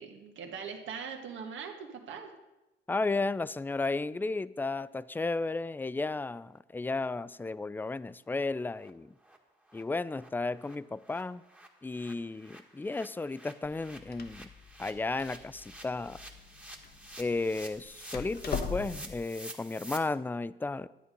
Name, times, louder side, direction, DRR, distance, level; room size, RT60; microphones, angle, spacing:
voice 1, 0.0-2.3, right 6 dB, 75° right, 3 dB, 1.7 m, -41 dB
voice 2, 2.9-9.1 9.7-11.4 11.8-14.5 14.8-16.2 17.2-20.9, left 3 dB, 10° left, 18 dB, 0.3 m, -33 dB
sound 1, 7.0-7.1 7.4-7.5 7.9-8.0 8.3-8.4 8.8-8.9 9.2-9.4 9.7-9.8 10.1-20.0, right 1 dB, 5° right, 1.5 m, -50 dB
Door, 13.6-19.2, left 5 dB, 50° left, 1.1 m, -41 dB
11.0 x 8.5 x 5.2 m, 1.0 s
cardioid pair, 90°, 20 cm